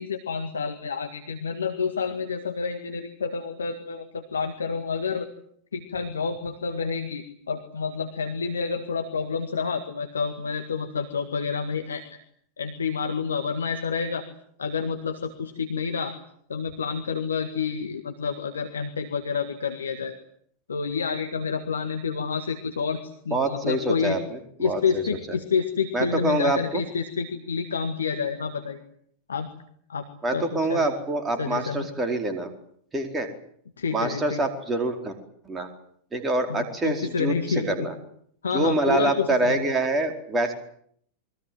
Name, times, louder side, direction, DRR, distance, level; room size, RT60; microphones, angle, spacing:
voice 1, 0.0-5.3 5.7-12.2 12.6-14.2 14.6-16.1 16.5-20.2 20.7-24.2 24.6-28.8 29.3-29.5 29.9-30.9 31.4-31.9 33.8-34.4 36.5-37.9 38.4-39.7, left 5 dB, 70° left, 7 dB, 1.9 m, -29 dB
voice 2, 23.3-25.0 25.9-26.8 30.2-32.5 32.9-33.3 33.9-35.2 35.4-35.7 36.1-37.9 38.5-40.5, right 2 dB, 15° right, 5 dB, 4.5 m, -26 dB
29.0 x 22.5 x 7.8 m, 0.67 s
figure-of-eight pair, 90°, 0 cm